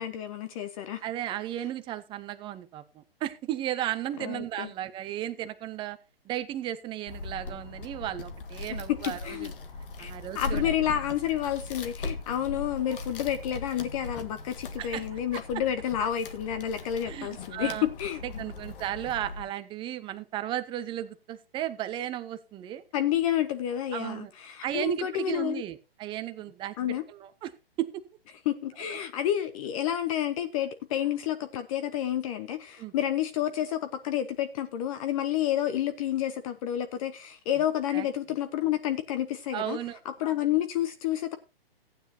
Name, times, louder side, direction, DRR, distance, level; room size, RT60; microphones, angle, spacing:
voice 1, 0.0-1.0 4.2-4.7 8.9-9.0 9.2-9.5 10.0-18.4 22.9-25.6 26.8-27.0 28.4-39.8 40.0-41.4, left 11 dB, 35° left, 0.9 m, -30 dB
voice 2, 1.0-6.0 6.2-9.5 10.0-10.7 14.8-15.2 17.0-17.9 18.2-22.8 23.9-24.3 24.6-26.7 27.1-27.5 27.8-28.0 28.9-29.0 32.8-32.9 37.9-38.1 39.5-40.0, right 12 dB, 15° right, 0.8 m, -34 dB
sound 1, 7.1-19.4, left 3 dB, 60° left, 1.9 m, -39 dB
15.0 x 9.5 x 2.8 m
hypercardioid pair, 135°, 30 cm